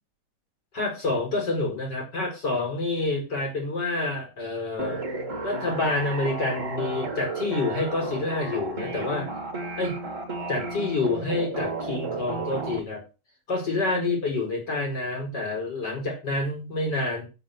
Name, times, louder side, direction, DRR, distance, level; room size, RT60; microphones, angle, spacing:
voice 1, 0.7-5.0 5.4-9.3 9.8-10.0 10.5-13.0 13.5-17.3, left 3 dB, 55° left, 1 dB, 5.1 m, -28 dB
sound 1, 4.8-12.8, right 3 dB, 40° right, 2.4 m, -33 dB
8.2 x 7.1 x 6.5 m, 0.30 s
omnidirectional pair, 2.2 m